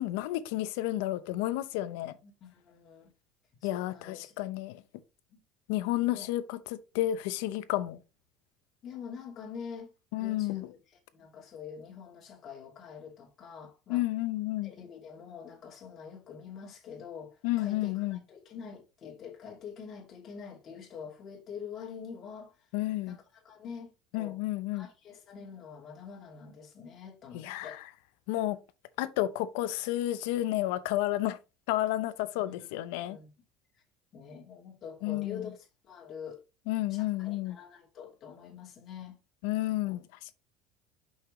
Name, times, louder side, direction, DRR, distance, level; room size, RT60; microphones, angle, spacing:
voice 1, 0.0-2.1 3.6-4.8 5.7-6.6 6.9-8.0 10.1-10.7 13.9-14.7 17.4-18.2 22.7-23.2 24.1-24.9 27.3-27.8 28.3-28.6 29.0-31.4 31.7-33.2 35.0-35.5 36.7-37.6 39.4-40.0, left 15 dB, 85° left, 0.7 m, -31 dB
voice 2, 2.2-3.1 3.6-4.3 5.3-5.4 6.1-6.3 8.8-14.0 14.6-22.7 23.1-24.4 24.7-27.8 32.4-33.3 34.1-36.4 36.9-39.2, left 6 dB, 40° left, 2.6 m, -46 dB
5.8 x 5.7 x 3.2 m
cardioid pair, 135°, 0 cm